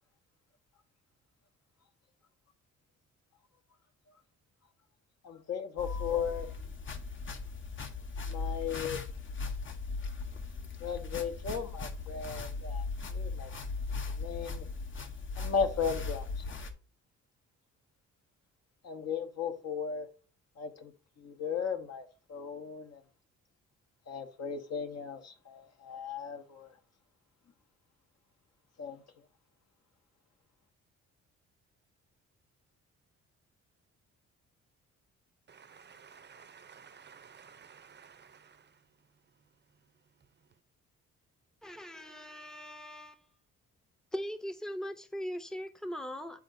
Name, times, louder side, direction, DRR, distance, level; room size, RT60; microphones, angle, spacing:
voice 1, 5.2-6.5 8.3-9.0 10.8-13.5 14.2-14.7 15.3-16.4 18.8-20.1 20.6-20.9 21.2-23.0 24.1-26.7 28.8-29.0, left 6 dB, 60° left, 1.2 m, -36 dB
sound 1, 5.8-16.7, left 4 dB, 40° left, 0.9 m, -38 dB
voice 2, 35.5-38.8, right 6 dB, 35° right, 0.7 m, -54 dB
voice 3, 41.6-43.2 44.1-46.4, equal, ahead, 0.7 m, -40 dB
9.8 x 4.0 x 2.7 m
cardioid pair, 90°, 30 cm